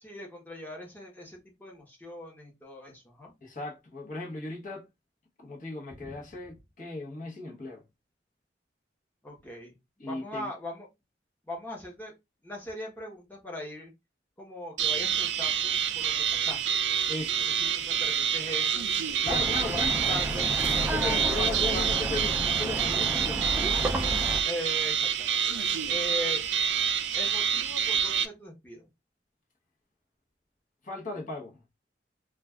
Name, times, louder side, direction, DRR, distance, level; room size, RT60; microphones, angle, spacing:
voice 1, 0.0-3.3 6.0-6.2 9.2-9.8 10.0-10.9 11.5-12.1 12.4-13.9 14.4-17.0 17.4-18.9 19.3-20.6 21.0-22.0 24.4-26.4 27.1-28.9, left 1 dB, 10° left, 0.9 m, -40 dB
voice 2, 3.4-4.9 5.4-7.8 10.0-10.5 17.1-17.5 19.2-20.2 20.6-23.5 30.8-31.6, left 3 dB, 45° left, 0.9 m, -37 dB
sound 1, 14.8-28.3, right 8 dB, 80° right, 0.4 m, -27 dB
sound 2, 19.3-24.4, right 1 dB, 10° right, 0.4 m, -32 dB
2.4 x 2.3 x 3.3 m
head